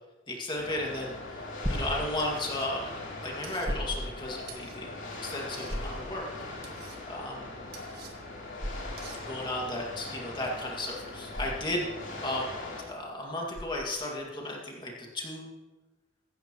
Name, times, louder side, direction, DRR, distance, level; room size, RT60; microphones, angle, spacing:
voice 1, 0.3-6.3 7.1-7.8 9.2-11.9 12.1-12.5 12.9-15.5, left 1 dB, 25° left, -1 dB, 2.1 m, -35 dB
sound 1, 0.6-12.8, left 2 dB, 75° left, 3.1 m, -41 dB
sound 2, 1.6-14.2, equal, 20° right, 1.6 m, -39 dB
sound 3, 2.2-2.7 3.4-3.7 4.5-4.8 5.5-5.8 6.6-7.0 7.7-8.1 9.0-9.2, right 6 dB, 55° right, 1.8 m, -48 dB
16.0 x 13.0 x 3.0 m, 1.2 s
head